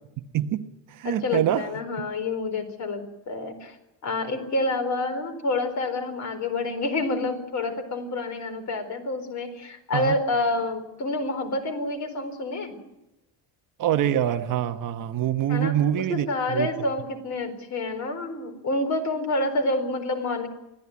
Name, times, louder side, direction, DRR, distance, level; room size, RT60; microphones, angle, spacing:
voice 1, 0.3-1.7 9.9-10.1 13.8-16.7, right 11 dB, 45° right, 1.1 m, -25 dB
voice 2, 1.0-3.8 4.0-12.8 15.5-20.5, left 2 dB, 40° left, 4.3 m, -28 dB
24.5 x 16.5 x 9.6 m
cardioid pair, 170°, 44 cm